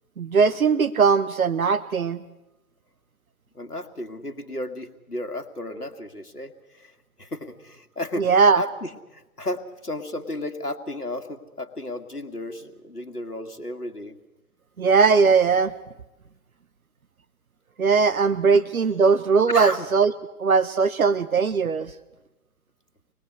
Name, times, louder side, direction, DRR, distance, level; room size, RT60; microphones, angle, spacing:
voice 1, 0.2-2.2 8.2-8.6 14.8-15.7 17.8-20.1 20.4-21.9, right 5 dB, 65° right, 13 dB, 1.1 m, -19 dB
voice 2, 3.5-8.3 8.5-14.2 18.5-18.6 19.5-19.9, left 1 dB, 90° left, 6 dB, 2.1 m, -33 dB
26.0 x 20.0 x 8.1 m, 0.99 s
figure-of-eight pair, 125°, 45 cm